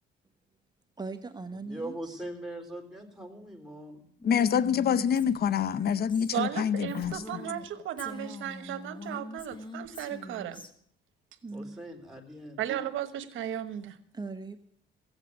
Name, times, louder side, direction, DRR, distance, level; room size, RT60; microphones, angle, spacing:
voice 1, 1.0-2.2 11.4-11.8 14.1-14.6, right 3 dB, 20° right, 1.0 m, -39 dB
voice 2, 1.6-4.0 11.5-12.6, right 1 dB, ahead, 3.5 m, -41 dB
voice 3, 4.2-7.2, left 8 dB, 50° left, 0.7 m, -26 dB
Female speech woman speaking, 4.2-7.7 8.0-10.7, left 2 dB, 25° left, 1.8 m, -43 dB
voice 4, 6.3-10.6 12.6-14.0, right 10 dB, 80° right, 1.2 m, -35 dB
16.0 x 8.1 x 8.4 m
cardioid pair, 90°, 20 cm